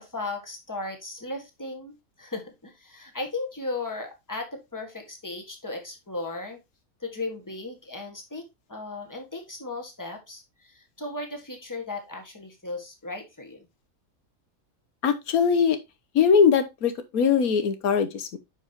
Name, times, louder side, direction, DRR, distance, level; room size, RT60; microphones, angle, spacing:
voice 1, 0.0-6.6 7.0-13.7, left 2 dB, 15° left, 1.8 m, -36 dB
voice 2, 15.0-15.8 16.1-18.4, left 6 dB, 85° left, 1.4 m, -21 dB
10.0 x 4.9 x 3.0 m
omnidirectional pair, 1.5 m